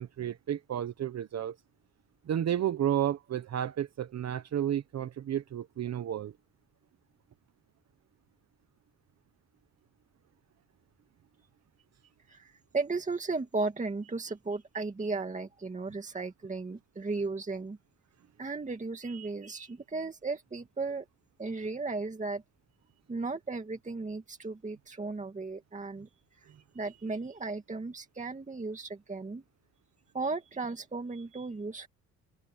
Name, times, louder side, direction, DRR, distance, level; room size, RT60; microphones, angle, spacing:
voice 1, 0.0-1.6 2.2-6.3, right 10 dB, 55° right, 1.1 m, -32 dB
voice 2, 12.3-17.8 18.4-21.1 21.4-22.4 23.1-26.1 26.4-29.4 30.1-31.9, right 3 dB, 25° right, 2.2 m, -35 dB
cardioid pair, 95°, 32 cm